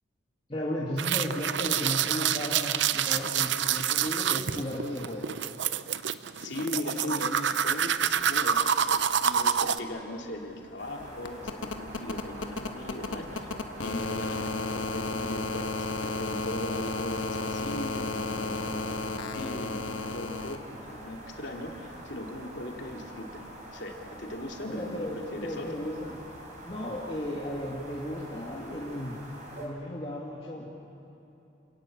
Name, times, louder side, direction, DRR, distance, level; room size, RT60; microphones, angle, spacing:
voice 1, 0.5-5.3 24.7-26.2 26.6-29.2 29.6-30.7, left 1 dB, 30° left, -5 dB, 2.3 m, -35 dB
sound 1, 1.0-9.8, right 8 dB, 70° right, 0.6 m, -27 dB
voice 2, 6.3-13.5 13.8-23.4 23.7-25.8, left 1 dB, 70° left, 1 dB, 2.7 m, -39 dB
sound 2, 9.7-20.6 22.0-22.1, left 3 dB, 85° left, 1.3 m, -34 dB
sound 3, 10.8-29.7, right 1 dB, 40° right, 4.0 m, -46 dB
28.5 x 18.0 x 7.4 m, 2.9 s
head